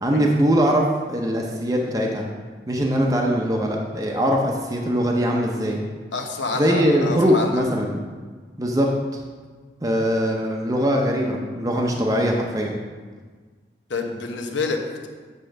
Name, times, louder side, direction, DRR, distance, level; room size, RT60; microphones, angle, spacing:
voice 1, 0.0-2.3 2.7-5.8 6.5-8.0 8.6-9.2 9.8-12.8, equal, 20° right, 0 dB, 0.6 m, -21 dB
voice 2, 6.1-7.6 13.9-15.1, left 3 dB, 85° left, 4 dB, 0.9 m, -28 dB
7.8 x 3.7 x 6.4 m, 1.5 s
head